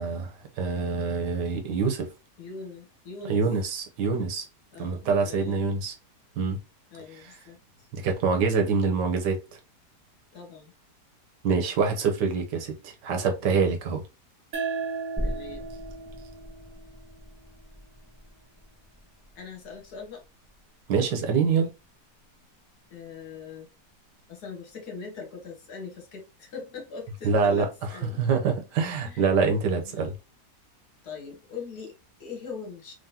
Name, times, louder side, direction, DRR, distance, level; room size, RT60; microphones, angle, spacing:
voice 1, 0.0-2.1 3.3-4.5 4.8-5.9 6.4-6.6 7.1-7.3 7.9-9.4 11.4-14.0 20.9-21.7 27.2-27.7 28.2-30.1, right 5 dB, 80° right, 1.5 m, -25 dB
voice 2, 2.4-3.4 4.7-5.7 6.9-7.9 10.3-10.7 15.2-15.7 19.4-20.2 22.9-23.7 24.3-28.2 29.0-29.3 29.8-30.1 31.0-32.9, left 5 dB, 70° left, 1.7 m, -41 dB
sound 1, 14.5-17.7, right 5 dB, 55° right, 1.4 m, -36 dB
sound 2, 15.2-22.4 22.8-22.9, equal, ahead, 0.6 m, -40 dB
3.7 x 3.5 x 2.8 m
omnidirectional pair, 1.8 m